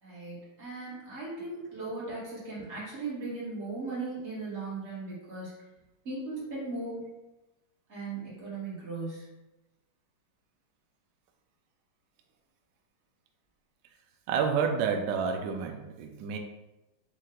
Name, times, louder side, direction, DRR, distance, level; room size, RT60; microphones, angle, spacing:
voice 1, 0.0-5.5 6.0-7.1 7.9-9.3, right 3 dB, 35° right, -8 dB, 1.8 m, -37 dB
voice 2, 14.3-16.4, right 6 dB, 75° right, 4 dB, 1.0 m, -29 dB
4.5 x 2.8 x 3.8 m, 0.99 s
omnidirectional pair, 2.4 m